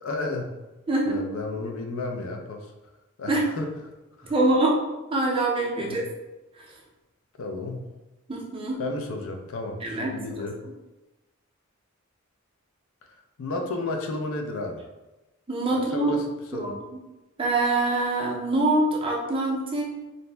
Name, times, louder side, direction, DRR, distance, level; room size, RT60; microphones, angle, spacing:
voice 1, 0.0-0.5 1.1-2.7 3.2-4.3 5.8-6.0 7.4-7.9 8.8-10.5 13.0-13.1 13.4-14.8 15.7-16.2 16.5-16.7, left 2 dB, 65° left, 4 dB, 0.4 m, -32 dB
voice 2, 4.3-4.8 5.1-6.0 6.6-6.7 8.3-8.8 9.8-10.5 15.5-16.1 16.5-16.7 17.4-20.0, right 2 dB, 25° right, -1 dB, 0.4 m, -24 dB
2.6 x 2.0 x 3.2 m, 1.1 s
head